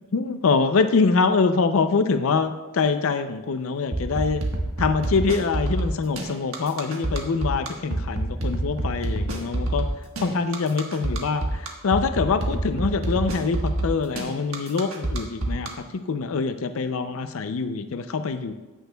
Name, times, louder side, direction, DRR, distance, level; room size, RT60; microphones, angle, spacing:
voice 1, 0.1-4.4 4.8-9.9 10.2-18.5, left 4 dB, 75° left, 9 dB, 0.5 m, -24 dB
sound 1, 3.9-15.7, right 1 dB, 75° right, 1.3 m, -26 dB
14.5 x 6.3 x 2.3 m, 1.2 s
head